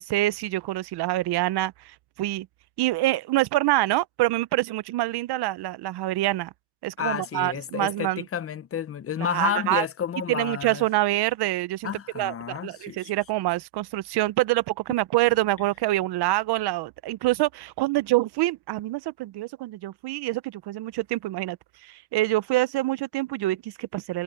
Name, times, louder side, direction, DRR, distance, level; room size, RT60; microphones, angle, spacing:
voice 1, 0.0-2.5 2.8-6.5 6.8-8.2 9.2-9.9 10.3-11.9 12.1-24.2, right 17 dB, 70° right, 0.7 m, -26 dB
voice 2, 7.0-10.8 11.8-13.1, left 8 dB, 35° left, 0.7 m, -31 dB
cardioid pair, 130°, 41 cm